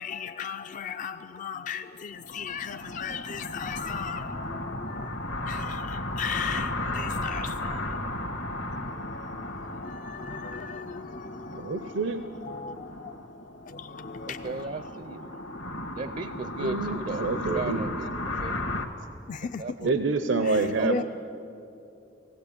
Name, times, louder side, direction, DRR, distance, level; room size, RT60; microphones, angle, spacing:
voice 1, 0.0-8.0 8.4-12.1 12.4-13.1 13.7-14.7 19.3-19.9 20.4-21.0, left 6 dB, 45° left, 0.4 m, -37 dB
Wind - synth, 2.1-18.9, left 1 dB, 70° left, 1.5 m, -35 dB
voice 2, 11.5-12.2 16.6-17.9 19.8-21.0, right 3 dB, 80° right, 0.8 m, -27 dB
voice 3, 14.2-15.3 15.9-18.6 19.6-19.9 20.8-21.0, right 4 dB, 45° right, 0.5 m, -36 dB
18.5 x 16.5 x 8.6 m
head